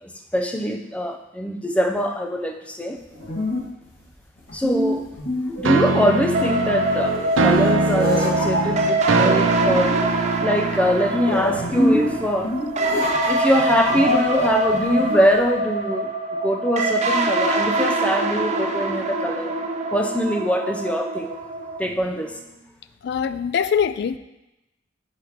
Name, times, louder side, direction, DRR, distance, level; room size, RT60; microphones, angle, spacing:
voice 1, 0.0-3.0 4.5-5.1 5.6-7.2 7.4-9.9 10.4-12.6 13.3-19.6 19.9-21.4 21.8-22.5, equal, 5° left, 4 dB, 0.5 m, -23 dB
sound 1, 3.0-15.5, left 1 dB, 85° left, 2.0 m, -27 dB
sound 2, 5.6-12.5, right 4 dB, 85° right, 0.5 m, -24 dB
sound 3, 6.3-21.9, right 2 dB, 35° right, 0.6 m, -24 dB
voice 2, 23.0-24.2, left 7 dB, 60° left, 13 dB, 0.3 m, -22 dB
6.4 x 4.6 x 5.0 m, 0.96 s
head